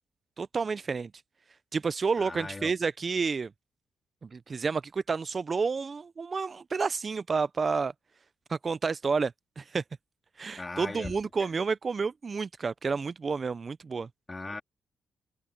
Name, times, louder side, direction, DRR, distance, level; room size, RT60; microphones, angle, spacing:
voice 1, 0.4-1.1 1.7-3.5 4.3-7.9 8.5-9.8 10.4-14.1, right 5 dB, 30° right, 0.3 m, -30 dB
voice 2, 2.2-2.7 10.6-11.5 14.3-14.6, left 3 dB, 20° left, 3.1 m, -39 dB
cardioid pair, 145°, 0 cm